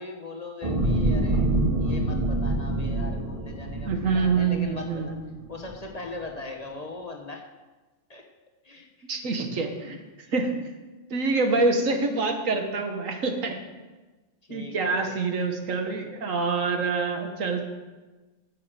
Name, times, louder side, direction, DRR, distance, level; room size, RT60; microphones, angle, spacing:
voice 1, 0.0-1.5 1.8-5.1 5.5-7.5 8.1-8.2 8.6-9.1 9.8-9.9 10.2-10.3 14.5-15.1, left 3 dB, 30° left, 2 dB, 1.1 m, -40 dB
sound 1, 0.6-5.1 5.6-5.7, right 1 dB, 30° right, 1.0 m, -26 dB
voice 2, 3.9-5.2 9.1-10.0 10.3-10.5 11.1-13.6 14.5-17.7, right 4 dB, 80° right, 5 dB, 1.6 m, -26 dB
9.6 x 6.5 x 7.5 m, 1.2 s
omnidirectional pair, 1.3 m